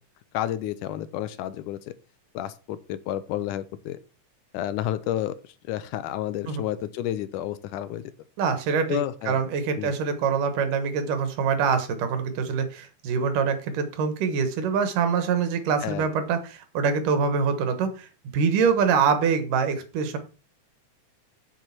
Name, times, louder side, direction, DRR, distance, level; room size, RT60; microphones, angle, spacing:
voice 1, 0.3-1.8 2.3-4.0 4.5-5.4 5.7-8.1 8.9-9.4 9.8-9.9 15.8-16.1, left 12 dB, 80° left, 14 dB, 2.2 m, -30 dB
voice 2, 8.4-18.1 18.3-20.2, right 6 dB, 85° right, 9 dB, 3.0 m, -24 dB
7.6 x 6.6 x 5.8 m, 0.35 s
omnidirectional pair, 3.7 m